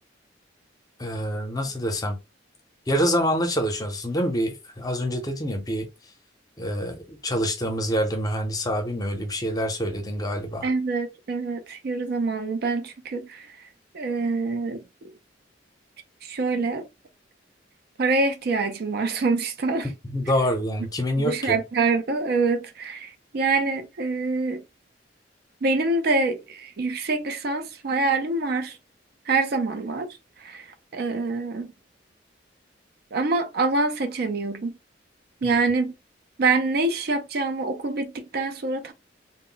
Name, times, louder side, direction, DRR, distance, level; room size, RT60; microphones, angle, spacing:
voice 1, 1.0-2.2 2.9-5.9 6.6-10.7 20.1-21.6 35.4-35.6, equal, 20° left, 0.7 m, -26 dB
voice 2, 10.6-13.6 13.9-14.8 16.2-16.9 18.0-19.9 21.2-24.6 25.6-28.8 29.3-30.1 30.4-31.7 33.1-34.8 35.4-35.9 36.4-38.9, right 3 dB, 55° right, 0.4 m, -25 dB
2.1 x 2.0 x 3.8 m
head